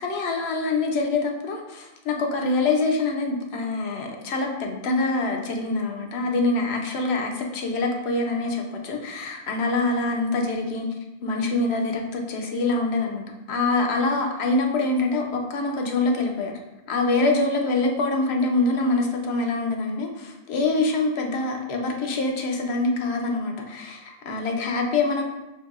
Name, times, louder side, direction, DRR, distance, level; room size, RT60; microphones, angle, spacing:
voice 1, 0.0-10.9 11.2-16.5 16.9-25.2, left 3 dB, 80° left, 3 dB, 0.9 m, -25 dB
4.5 x 3.0 x 2.4 m, 1.0 s
omnidirectional pair, 1.1 m